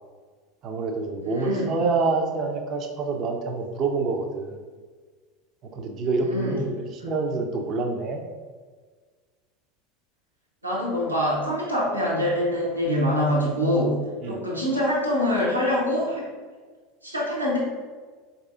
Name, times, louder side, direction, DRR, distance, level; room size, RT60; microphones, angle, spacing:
voice 1, 0.6-4.6 5.7-8.2 14.2-14.4, right 3 dB, 40° right, 4 dB, 0.4 m, -27 dB
voice 2, 1.2-1.7 6.2-6.6 7.0-7.1 10.6-14.0 14.2-16.2 17.0-17.6, left 1 dB, 85° right, -5 dB, 0.9 m, -24 dB
4.5 x 2.7 x 2.4 m, 1.5 s
figure-of-eight pair, 75°, 0 cm